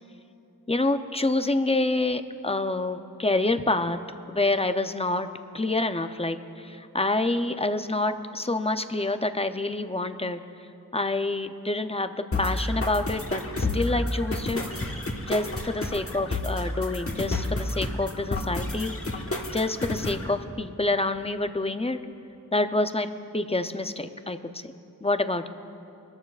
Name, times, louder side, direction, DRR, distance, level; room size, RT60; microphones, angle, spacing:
voice 1, 0.7-4.0 4.3-5.3 5.5-10.4 10.9-14.6 15.3-22.0 22.5-24.7 25.0-25.5, left 2 dB, 15° left, 9 dB, 0.5 m, -27 dB
sound 1, 12.3-20.3, left 2 dB, 40° left, 1.3 m, -30 dB
24.0 x 13.0 x 2.4 m, 2.8 s
wide cardioid pair, 60°, 35 cm